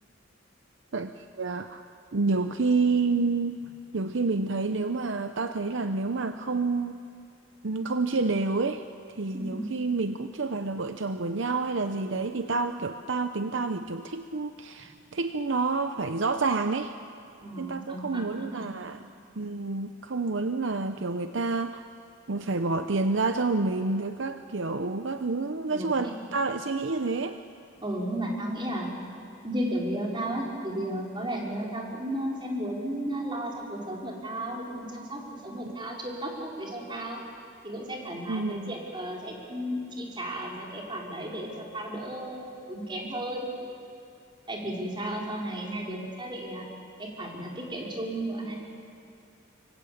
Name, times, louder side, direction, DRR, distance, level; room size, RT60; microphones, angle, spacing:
voice 1, 0.9-1.8 2.1-3.6 3.9-7.0 7.6-8.8 9.2-16.9 17.6-19.0 19.4-21.9 22.3-27.4 38.3-38.7, right 3 dB, 65° right, 9 dB, 0.7 m, -28 dB
voice 2, 9.3-9.8 17.4-18.7 25.7-26.1 27.8-28.9 29.4-37.2 37.6-43.5 44.5-46.7 47.0-48.6, right 1 dB, 25° right, -2 dB, 4.7 m, -34 dB
25.5 x 23.5 x 8.6 m, 2.4 s
head